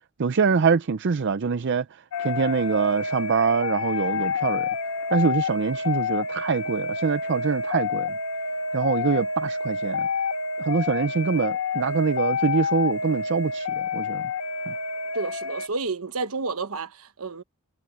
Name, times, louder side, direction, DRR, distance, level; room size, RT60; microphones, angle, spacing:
voice 1, 0.2-4.7 5.1-8.2 8.7-10.1 10.6-14.2 14.7-14.8, right 5 dB, 50° right, 0.5 m, -24 dB
sound 1, 2.1-15.7, left 4 dB, 80° left, 1.6 m, -28 dB
voice 2, 15.1-17.4, right 3 dB, 70° right, 1.2 m, -30 dB
head